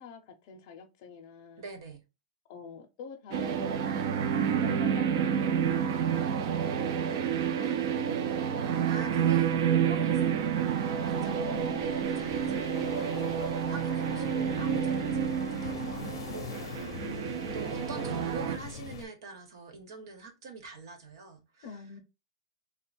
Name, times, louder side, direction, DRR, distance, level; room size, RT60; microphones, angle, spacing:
voice 1, 0.0-1.6 2.5-4.1 4.5-8.3 11.1-12.0 15.1-15.6 17.0-17.6 21.6-22.0, left 5 dB, 35° left, 0.6 m, -46 dB
voice 2, 1.6-2.0 3.9-4.0 7.6-7.8 8.9-10.5 11.1-21.8, right 4 dB, 60° right, 1.2 m, -45 dB
sound 1, 3.3-18.6, right 8 dB, 45° right, 0.4 m, -29 dB
sound 2, 5.3-19.1, left 7 dB, 80° left, 0.6 m, -44 dB
3.5 x 2.3 x 4.1 m
supercardioid pair, 180°, 3 cm